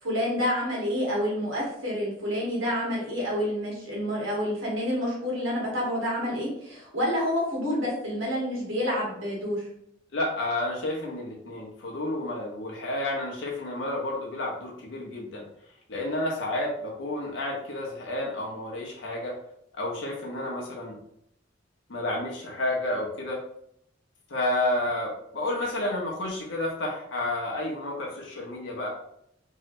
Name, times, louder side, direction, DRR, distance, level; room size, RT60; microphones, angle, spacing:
voice 1, 0.0-9.6, equal, 90° right, -4 dB, 1.3 m, -28 dB
voice 2, 10.1-15.4 15.9-19.4 19.8-21.0 21.9-23.4 24.3-28.9, left 1 dB, 75° left, -2 dB, 0.6 m, -30 dB
3.1 x 2.8 x 2.5 m, 0.74 s
head